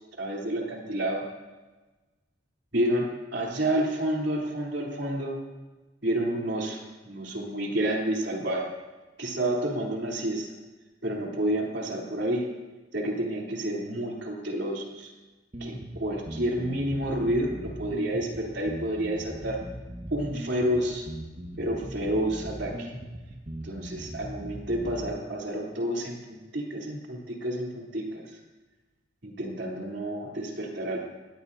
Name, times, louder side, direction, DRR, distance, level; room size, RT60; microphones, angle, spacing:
voice 1, 0.2-1.2 2.7-5.4 6.0-8.7 9.2-10.5 11.0-12.5 12.9-15.1 15.6-19.6 20.1-21.1 21.6-22.9 23.6-28.3 29.2-31.0, right 1 dB, 65° right, -2 dB, 3.4 m, -29 dB
sound 1, 15.5-25.1, equal, 35° right, 1.5 m, -39 dB
21.5 x 17.5 x 2.7 m, 1.2 s
head